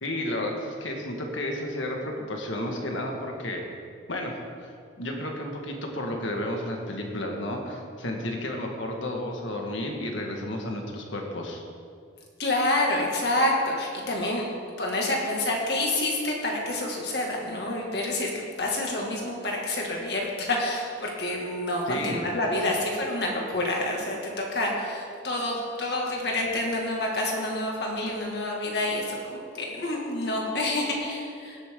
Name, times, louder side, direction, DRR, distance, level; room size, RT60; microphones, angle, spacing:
voice 1, 0.0-3.7 4.1-4.7 5.0-11.7 21.9-22.3, left 1 dB, 85° left, 1 dB, 1.8 m, -32 dB
voice 2, 12.4-14.4 14.8-31.6, left 1 dB, 55° left, -1 dB, 2.2 m, -28 dB
18.0 x 8.3 x 3.9 m, 2.3 s
head